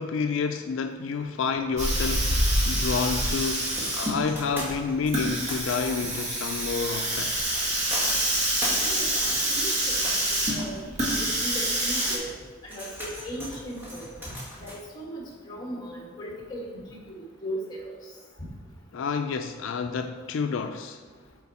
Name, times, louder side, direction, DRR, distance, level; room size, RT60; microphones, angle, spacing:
voice 1, 0.0-7.5 18.9-21.0, left 5 dB, 75° left, 7 dB, 0.4 m, -29 dB
Hiss, 1.8-12.2, right 1 dB, 35° right, 1.5 m, -27 dB
sound 1, 3.7-14.8, equal, 10° right, 2.0 m, -40 dB
voice 2, 8.6-10.0 10.5-10.9 11.2-12.3 12.6-14.3 14.6-17.2 17.4-17.9 18.4-18.5, equal, 20° left, -2 dB, 1.7 m, -37 dB
8.3 x 4.6 x 4.2 m, 1.6 s
head